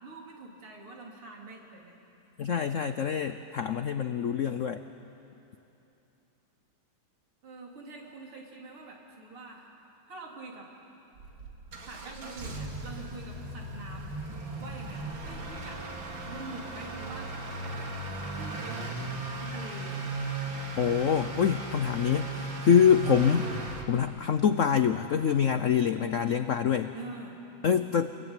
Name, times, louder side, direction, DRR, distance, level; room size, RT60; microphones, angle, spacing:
voice 1, 0.0-2.0 2.4-2.6 7.4-9.7 10.1-10.7 11.8-15.8 16.2-17.9 18.3-20.2 24.3-24.4 26.9-27.4 27.7-28.1, right 3 dB, 85° right, -1 dB, 4.5 m, -45 dB
voice 2, 2.4-4.8 20.8-23.5 23.9-26.9 27.6-28.1, left 7 dB, 85° left, 10 dB, 0.6 m, -25 dB
Motor vehicle (road) / Accelerating revving vroom, 11.2-23.8, right 2 dB, 65° right, 3.0 m, -37 dB
28.5 x 22.5 x 9.1 m, 2.9 s
omnidirectional pair, 2.3 m